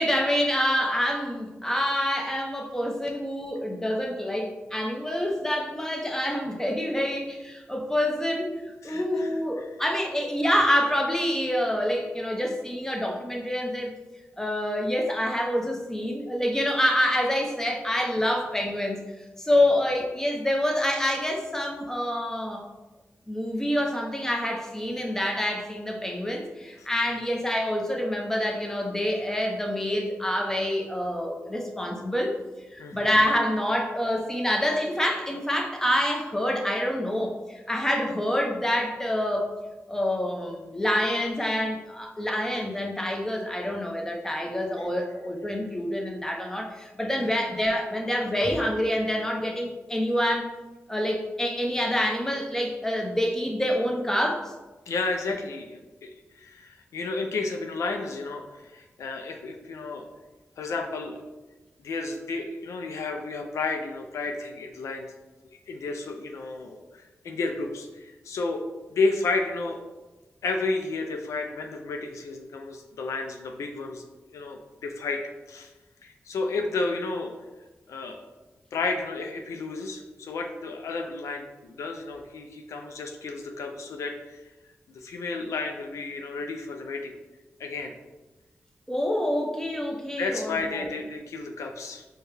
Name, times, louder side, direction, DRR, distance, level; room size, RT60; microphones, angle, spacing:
voice 1, 0.0-8.5 8.8-13.9 14.4-19.1 19.4-22.7 23.3-32.3 32.7-39.5 39.9-50.5 50.9-54.5 88.9-90.9, left 1 dB, 10° left, 1 dB, 0.7 m, -27 dB
voice 2, 8.8-9.3 26.8-26.9 32.8-33.1 54.9-60.1 60.6-61.2 61.8-65.1 65.7-69.8 70.4-74.0 74.3-75.2 75.5-75.7 76.0-77.3 77.9-78.2 78.7-84.4 84.9-87.1 87.6-87.9 90.2-92.0, left 3 dB, 80° left, 3 dB, 0.4 m, -32 dB
4.3 x 2.2 x 3.2 m, 1.1 s
cardioid pair, 45°, 5 cm